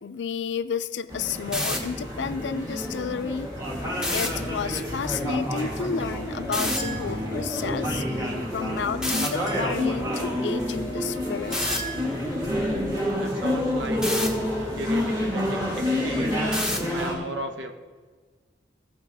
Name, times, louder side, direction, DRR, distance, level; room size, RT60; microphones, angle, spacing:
voice 1, 0.0-3.5 4.0-8.0 8.5-11.6, left 6 dB, 75° left, 12 dB, 0.4 m, -31 dB
sound 1, 1.1-17.2, left 1 dB, 20° right, 2.0 m, -28 dB
sound 2, 1.4-1.8 3.9-4.3 6.5-6.8 9.0-9.3 11.5-11.8 14.0-14.3 16.5-16.9, left 1 dB, 5° right, 0.9 m, -27 dB
sound 3, 6.8-7.6 9.5-10.2 11.5-12.5, right 2 dB, 45° right, 2.0 m, -38 dB
voice 2, 13.2-14.4 14.7-16.6 16.9-17.7, right 1 dB, 80° right, 5 dB, 1.0 m, -36 dB
17.5 x 6.2 x 3.5 m, 1.5 s
head